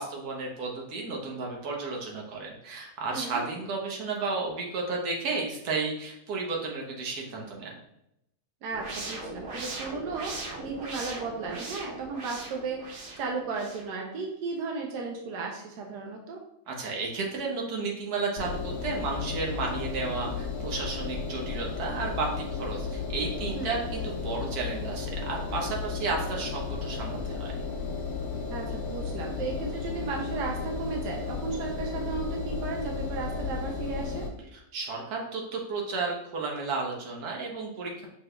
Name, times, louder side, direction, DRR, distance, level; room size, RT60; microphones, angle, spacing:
voice 1, 0.0-7.7 16.7-27.5 34.5-38.1, right 3 dB, 70° right, -1 dB, 1.4 m, -33 dB
voice 2, 3.1-3.4 8.6-10.3 10.6-16.4 23.5-23.8 28.5-34.3, right 4 dB, 90° right, 1 dB, 1.3 m, -35 dB
sound 1, 8.7-13.9, right 2 dB, 55° right, 0.6 m, -39 dB
Engine, 18.4-34.3, left 5 dB, 60° left, 1.1 m, -34 dB
5.8 x 3.6 x 2.3 m, 0.79 s
omnidirectional pair, 1.7 m